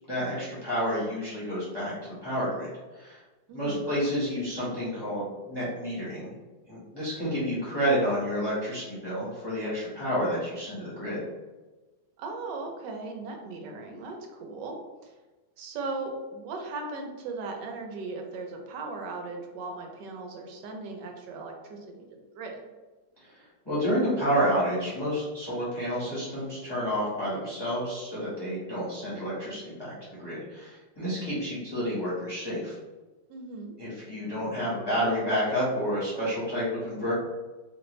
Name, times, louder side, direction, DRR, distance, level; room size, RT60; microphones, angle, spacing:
voice 1, 0.1-3.2 3.5-6.3 6.7-11.2 23.2-23.3 23.6-29.9 30.2-32.8 33.8-37.1, equal, 15° left, -9 dB, 0.9 m, -30 dB
voice 2, 3.5-3.9 12.2-15.2 15.6-22.6 33.3-33.7, right 3 dB, 75° right, 2 dB, 1.2 m, -38 dB
3.0 x 2.5 x 3.0 m, 1.2 s
omnidirectional pair, 2.1 m